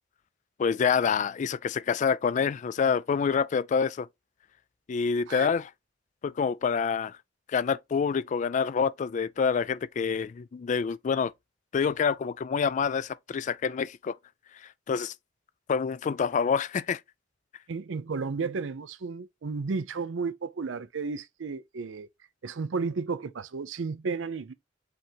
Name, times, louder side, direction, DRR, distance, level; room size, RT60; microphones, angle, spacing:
voice 1, 0.6-4.1 4.9-5.7 6.2-7.2 7.5-11.3 11.7-14.2 14.9-15.1 15.7-17.0, left 6 dB, 40° left, 0.3 m, -27 dB
voice 2, 17.7-22.1 22.4-24.5, right 4 dB, 80° right, 0.5 m, -33 dB
5.1 x 3.4 x 2.9 m
head